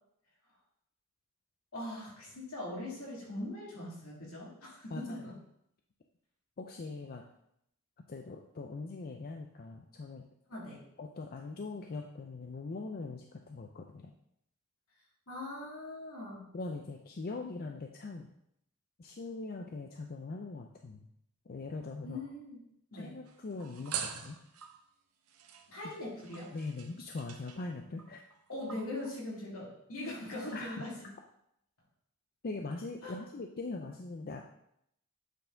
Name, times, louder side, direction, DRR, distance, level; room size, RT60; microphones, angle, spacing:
voice 1, 1.7-5.4 10.5-10.8 15.3-16.4 22.0-22.6 22.9-23.1 25.7-26.5 28.5-31.1 33.0-33.2, left 1 dB, 70° left, -5 dB, 2.6 m, -41 dB
voice 2, 4.9-5.2 6.6-7.2 8.1-10.3 11.0-14.1 16.5-18.3 19.0-21.1 21.5-22.2 22.9-24.4 26.5-28.2 30.5-30.8 32.4-34.4, left 3 dB, 40° left, 3 dB, 0.5 m, -41 dB
sound 1, 23.3-24.9 25.3-28.4 28.7-29.1, right 8 dB, 80° right, 0.7 m, -44 dB
8.1 x 4.2 x 3.9 m, 0.75 s
head